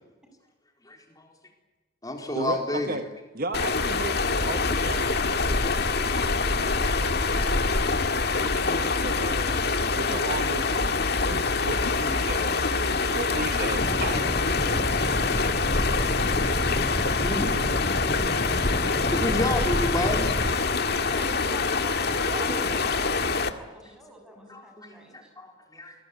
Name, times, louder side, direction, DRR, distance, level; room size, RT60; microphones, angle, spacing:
voice 1, 0.8-1.3 2.0-3.0 17.2-17.8 18.6-21.0 22.4-22.7 23.0-23.1 24.3-25.9, left 1 dB, 20° left, 2 dB, 4.1 m, -33 dB
voice 2, 2.3-3.1 3.3-9.5 9.9-12.7 13.1-15.0 19.3-19.4 21.8-21.9 22.3-22.5, right 2 dB, 50° right, 9 dB, 1.3 m, -36 dB
sound 1, 3.5-23.5, left 4 dB, 55° left, 1.9 m, -25 dB
sound 2, 13.7-20.4, equal, 35° left, 4.2 m, -31 dB
voice 3, 21.0-25.3, equal, 5° right, 2 dB, 7.9 m, -45 dB
27.5 x 21.0 x 9.6 m, 1.2 s
head